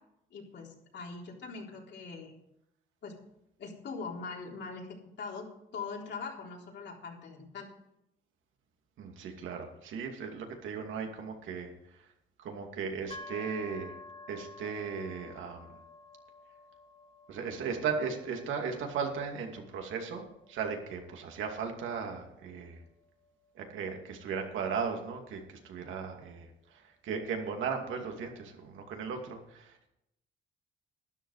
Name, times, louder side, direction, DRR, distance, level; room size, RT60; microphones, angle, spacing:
voice 1, 0.3-2.3 3.0-3.2 3.6-4.9 5.2-7.7, left 4 dB, 65° left, -1 dB, 3.8 m, -42 dB
voice 2, 9.0-12.0 12.4-13.9 14.3-15.7 17.3-22.8 23.5-29.8, right 6 dB, 80° right, 3 dB, 2.5 m, -37 dB
sound 1, 13.1-26.8, left 2 dB, 30° left, 1.9 m, -52 dB
12.5 x 11.0 x 4.9 m, 0.82 s
cardioid pair, 90°, 20 cm